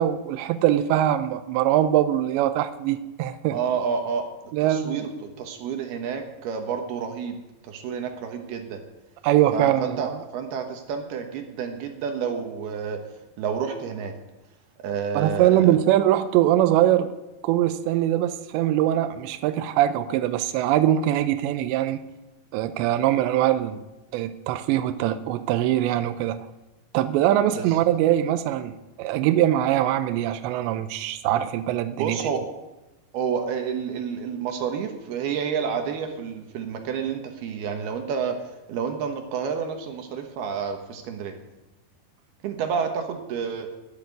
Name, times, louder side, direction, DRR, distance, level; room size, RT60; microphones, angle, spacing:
voice 1, 0.0-3.6 4.5-5.1 9.2-10.2 15.1-17.1 17.4-22.0 22.5-23.9 24.1-26.5 26.9-32.3, right 12 dB, 90° right, 11 dB, 2.9 m, -22 dB
voice 2, 3.5-8.8 9.5-13.0 13.4-14.2 14.8-15.8 27.4-27.8 31.9-32.5 33.1-38.4 38.7-41.4 42.4-43.7, right 6 dB, 70° right, 5 dB, 3.0 m, -29 dB
13.5 x 8.4 x 9.4 m, 1.0 s
omnidirectional pair, 5.1 m